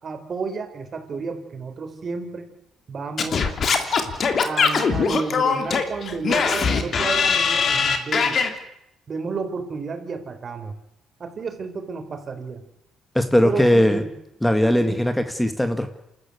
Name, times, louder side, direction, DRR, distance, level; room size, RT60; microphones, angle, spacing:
voice 1, 0.0-2.5 2.9-3.4 4.4-8.4 9.1-10.7 11.2-12.6 13.4-14.1 14.8-15.0, right 4 dB, 45° right, 7 dB, 4.2 m, -31 dB
Singing / Scratching (performance technique), 3.2-8.5, left 5 dB, 50° left, 3.0 m, -21 dB
voice 2, 13.2-14.0 14.4-15.9, left 1 dB, 5° left, 8 dB, 1.9 m, -19 dB
28.0 x 13.5 x 8.4 m, 0.82 s
supercardioid pair, 65°, 0 cm